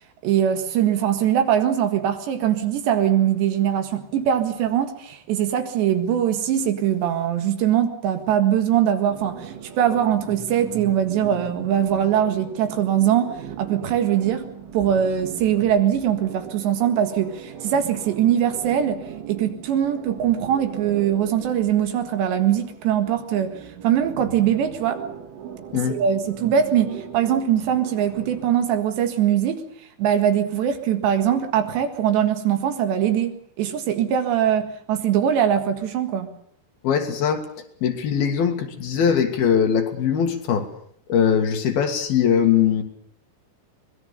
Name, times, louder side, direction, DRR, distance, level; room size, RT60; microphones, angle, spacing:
voice 1, 0.2-23.5 23.8-25.0 25.9-29.6 30.0-36.3, right 9 dB, 70° right, 8 dB, 3.8 m, -22 dB
sound 1, 9.1-28.5, right 8 dB, 85° right, 4.8 m, -38 dB
voice 2, 36.8-37.5 37.8-40.7 41.1-42.8, left 8 dB, 60° left, 5 dB, 3.4 m, -21 dB
24.5 x 20.0 x 6.8 m, 0.64 s
omnidirectional pair, 5.3 m